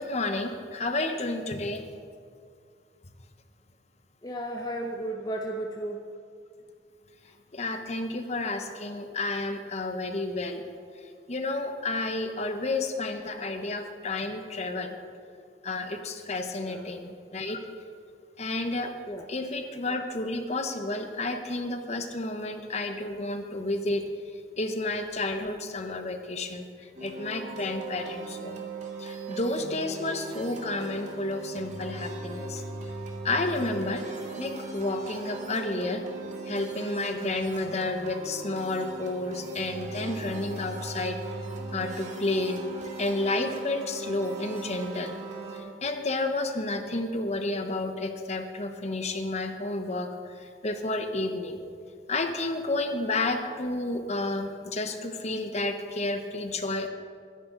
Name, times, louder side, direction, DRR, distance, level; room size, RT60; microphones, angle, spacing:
voice 1, 0.0-1.8 7.5-10.6 11.3-14.9 15.6-17.6 18.4-18.9 19.3-24.1 24.6-26.7 27.0-28.6 29.0-32.6 33.2-34.0 34.4-36.0 36.5-41.2 41.7-42.6 43.0-45.2 45.5-51.6 52.1-56.9, left 2 dB, 35° left, 6 dB, 1.0 m, -31 dB
voice 2, 4.2-6.0 16.6-16.9 19.1-19.3, right 1 dB, 20° left, 1 dB, 0.7 m, -34 dB
sound 1, 26.9-45.6, right 3 dB, 40° right, 2.1 m, -38 dB
21.0 x 10.5 x 3.9 m, 2.3 s
head